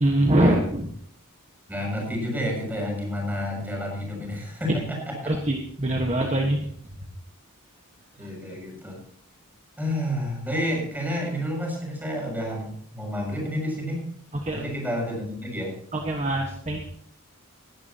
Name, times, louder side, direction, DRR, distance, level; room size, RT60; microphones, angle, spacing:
voice 1, 0.0-0.9 5.3-6.6 14.4-14.6 15.9-16.8, right 1 dB, 30° right, 2 dB, 1.5 m, -23 dB
voice 2, 1.7-5.3 8.1-9.0 9.8-14.0 14.5-15.7, equal, 10° right, -1 dB, 6.9 m, -30 dB
20.0 x 12.0 x 2.9 m, 0.63 s
head